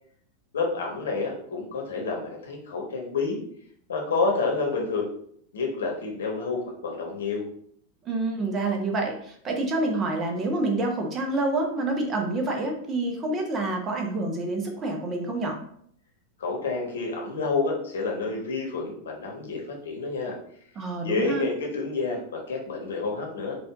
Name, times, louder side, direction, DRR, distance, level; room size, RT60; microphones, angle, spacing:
voice 1, 0.5-3.4 3.9-5.1 5.5-7.4 16.4-20.3 21.0-23.6, left 4 dB, 65° left, 0 dB, 1.1 m, -29 dB
voice 2, 8.0-15.6 20.7-21.5, right 2 dB, 25° right, 2 dB, 0.9 m, -27 dB
4.7 x 2.5 x 3.6 m, 0.65 s
figure-of-eight pair, 90°, 0 cm